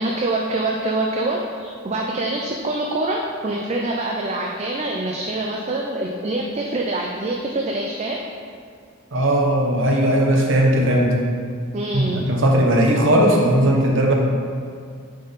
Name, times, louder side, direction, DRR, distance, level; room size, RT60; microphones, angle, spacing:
voice 1, 0.0-8.2 11.7-12.2, right 2 dB, 35° right, -1 dB, 0.5 m, -25 dB
voice 2, 9.1-11.2 11.9-14.1, right 1 dB, 65° right, 0 dB, 1.0 m, -17 dB
8.7 x 3.8 x 4.0 m, 2.1 s
head